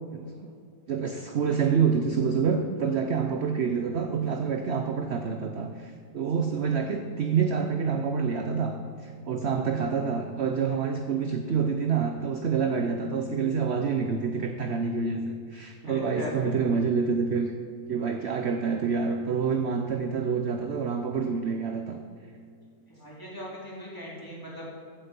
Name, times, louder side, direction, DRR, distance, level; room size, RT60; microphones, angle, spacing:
voice 1, 0.9-8.8 9.0-15.2 15.5-17.5 17.9-22.0, right 6 dB, 55° right, 5 dB, 0.8 m, -27 dB
voice 2, 15.8-16.5 22.9-24.7, equal, 10° left, -6 dB, 3.4 m, -39 dB
15.5 x 8.3 x 5.3 m, 2.3 s
omnidirectional pair, 1.8 m